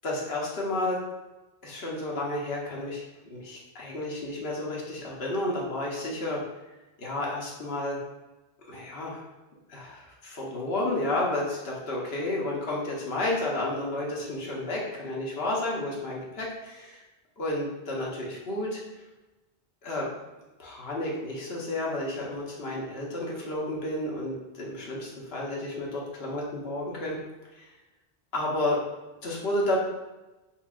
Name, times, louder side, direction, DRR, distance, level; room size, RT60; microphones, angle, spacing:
voice 1, 0.0-1.0 1.6-3.0 3.3-6.4 7.0-8.0 8.7-9.2 9.7-17.0 17.4-18.8 19.8-20.1 20.6-27.2 27.6-27.7 28.3-28.8 29.2-29.8, left 1 dB, 75° left, -3 dB, 1.1 m, -31 dB
5.6 x 2.3 x 2.4 m, 1.1 s
omnidirectional pair, 1.0 m